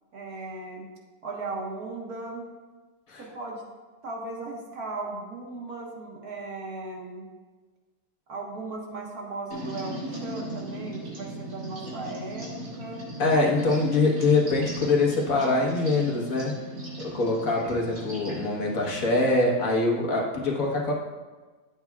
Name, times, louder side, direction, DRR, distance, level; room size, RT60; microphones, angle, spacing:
voice 1, 0.1-0.9 1.2-2.4 3.2-3.6 4.0-7.3 8.3-13.0, right 3 dB, 60° right, -2 dB, 1.9 m, -37 dB
sound 1, 9.5-19.3, right 1 dB, 85° right, 3.2 m, -38 dB
voice 2, 13.2-16.5 17.0-20.9, left 2 dB, 55° left, -1 dB, 1.7 m, -24 dB
13.5 x 8.3 x 2.4 m, 1.3 s
omnidirectional pair, 1.8 m